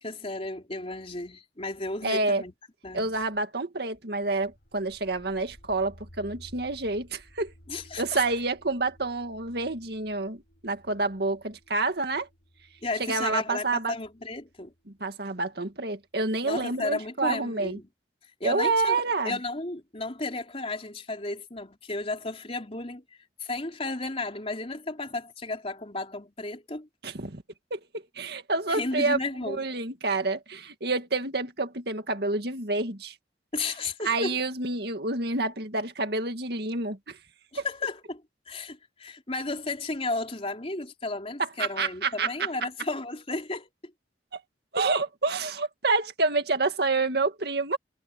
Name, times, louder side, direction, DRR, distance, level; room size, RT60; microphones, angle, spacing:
voice 1, 0.0-2.5 2.8-3.2 7.7-8.2 12.8-14.7 16.4-17.9 18.4-23.0 23.4-26.9 28.7-29.6 33.5-34.4 37.5-38.2 38.5-43.7, left 2 dB, 35° left, 3.7 m, -33 dB
voice 2, 2.0-2.4 2.9-7.5 8.0-12.3 13.0-13.9 14.9-17.8 18.4-19.4 27.0-27.4 27.7-29.2 29.5-33.1 34.0-37.2 37.5-37.6 41.4-42.5 44.3-44.4 44.7-47.8, right 3 dB, 60° right, 2.1 m, -28 dB
sound 1, 4.2-16.0, equal, 55° left, 7.4 m, -55 dB
head